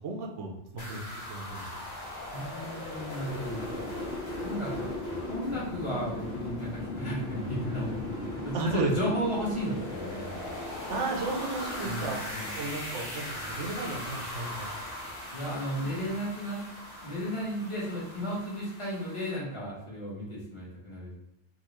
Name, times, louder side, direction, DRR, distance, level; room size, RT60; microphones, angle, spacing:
voice 1, 0.0-1.8 8.5-8.9 10.9-12.2 12.6-14.7 15.0-15.1, right 3 dB, 85° right, 0 dB, 1.0 m, -34 dB
sound 1, 0.8-19.4, left 1 dB, 65° left, 1.3 m, -38 dB
voice 2, 2.3-3.9 4.4-8.1 8.4-10.5 11.8-12.5 15.3-16.6 17.0-21.1, equal, 25° left, -7 dB, 1.3 m, -34 dB
3.7 x 2.4 x 3.0 m, 0.91 s
omnidirectional pair, 1.2 m